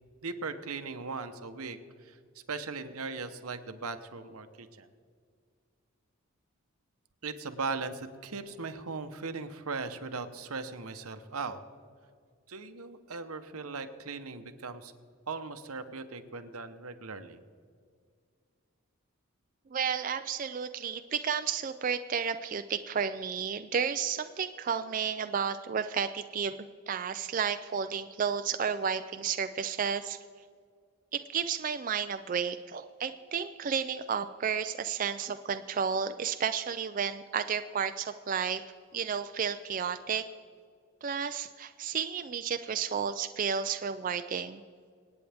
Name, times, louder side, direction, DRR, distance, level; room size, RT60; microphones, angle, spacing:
voice 1, 0.2-2.2 2.5-4.9 7.2-11.6 12.5-14.9 15.3-17.4, right 4 dB, 85° right, 8 dB, 1.0 m, -38 dB
voice 2, 19.7-30.2 31.1-38.6 38.9-40.2 41.0-44.6, right 7 dB, 40° right, 9 dB, 0.3 m, -32 dB
26.0 x 9.1 x 3.5 m, 2.1 s
head